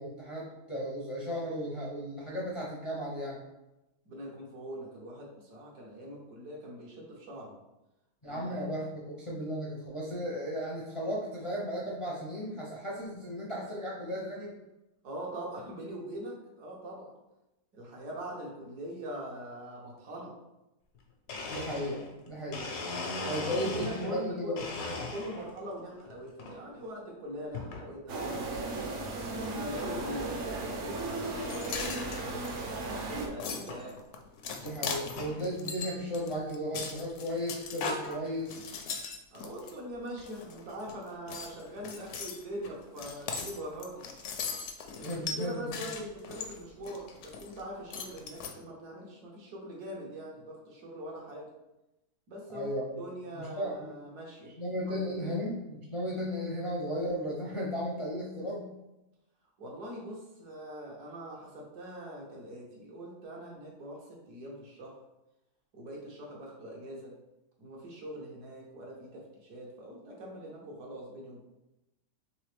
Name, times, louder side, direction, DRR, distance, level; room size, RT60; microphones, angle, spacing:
voice 1, 0.0-3.4 8.2-14.6 21.5-22.7 23.3-24.6 34.6-38.8 45.0-45.6 52.5-53.0 53.4-54.0 54.6-58.7, equal, 45° left, -5 dB, 0.4 m, -35 dB
voice 2, 4.0-7.6 8.2-8.6 15.0-17.1 17.7-20.3 23.2-24.6 25.1-29.2 29.6-34.0 39.3-44.1 45.0-51.5 52.3-52.7 53.0-54.5 54.9-55.3 59.6-65.0 65.7-67.1 67.6-71.4, equal, 80° right, -2 dB, 1.6 m, -42 dB
Domestic sounds home sounds, 20.9-21.0 21.3-24.2 24.6-25.6 26.1-26.6 27.5-27.9 28.5-28.6 29.4-29.5 29.8-30.1 30.5-30.6 30.8-30.9 31.4-31.5 32.8-32.9 33.7-33.8 34.5-35.4, left 3 dB, 85° left, 1.3 m, -39 dB
sound 1, 28.1-33.3, right 2 dB, 60° right, 0.9 m, -35 dB
sound 2, 31.5-39.7 40.2-40.9 41.3-47.6 47.9-48.5, left 5 dB, 65° left, 0.7 m, -39 dB
4.0 x 3.2 x 3.3 m, 0.96 s
omnidirectional pair, 1.7 m